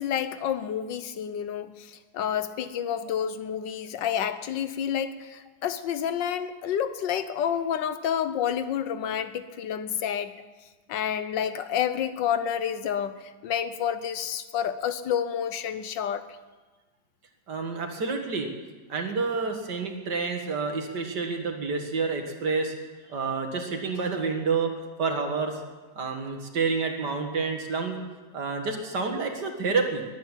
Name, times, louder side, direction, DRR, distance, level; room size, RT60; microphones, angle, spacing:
voice 1, 0.0-10.3 10.9-16.3, left 9 dB, 85° left, 12 dB, 1.6 m, -29 dB
voice 2, 17.5-18.5 18.9-22.7 23.1-24.7 25.0-25.5 26.0-28.0 28.3-30.0, right 4 dB, 65° right, 4 dB, 2.5 m, -28 dB
21.5 x 9.2 x 7.4 m, 1.3 s
omnidirectional pair, 1.9 m